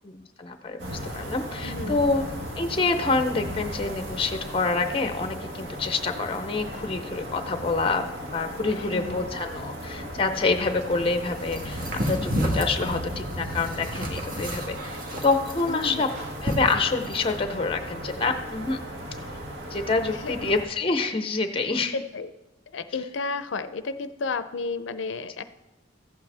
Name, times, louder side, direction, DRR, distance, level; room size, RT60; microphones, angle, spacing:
voice 1, 0.0-2.3 2.6-11.8 12.1-14.8 15.2-16.1 16.4-18.8 19.7-21.9, left 3 dB, 30° left, 8 dB, 0.6 m, -27 dB
sound 1, 0.8-20.6, equal, 75° right, 1.6 m, -36 dB
voice 2, 1.6-2.1 8.7-9.3 15.7-16.0 20.1-20.3 21.9-22.3 22.7-25.4, left 4 dB, 80° left, 12 dB, 0.5 m, -32 dB
sound 2, 11.5-17.3, equal, 50° right, 1.5 m, -31 dB
14.5 x 8.4 x 3.4 m, 1.0 s
head